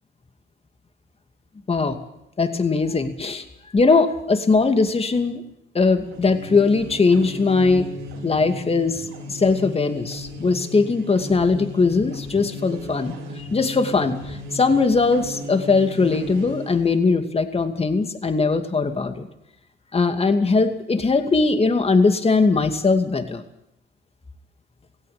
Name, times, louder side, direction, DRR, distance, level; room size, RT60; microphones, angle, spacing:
voice 1, 1.7-2.0 2.4-3.4 3.7-5.4 5.7-7.9 8.2-19.3 19.9-23.4, left 4 dB, 30° left, 7 dB, 2.5 m, -20 dB
sound 1, 6.0-17.0, equal, 90° right, 4.8 m, -36 dB
17.5 x 16.5 x 9.5 m, 0.82 s
cardioid pair, 90°, 20 cm